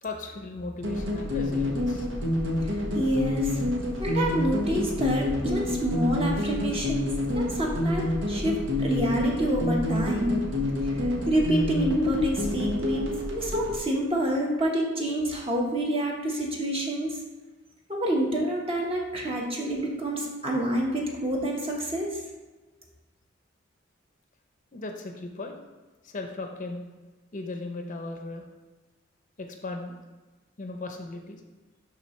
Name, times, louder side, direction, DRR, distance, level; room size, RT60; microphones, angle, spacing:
voice 1, 0.0-2.1 24.7-25.6 26.0-26.8 27.3-28.5 29.4-30.0 30.6-31.4, left 2 dB, 40° left, 4 dB, 0.7 m, -37 dB
sound 1, 0.8-13.8, left 1 dB, 85° right, 1.4 m, -28 dB
voice 2, 2.9-3.5 4.0-7.1 7.3-10.4 10.8-10.9 11.3-17.2 17.9-22.2, right 1 dB, 30° right, -1 dB, 1.3 m, -28 dB
11.0 x 3.8 x 3.2 m, 1.2 s
head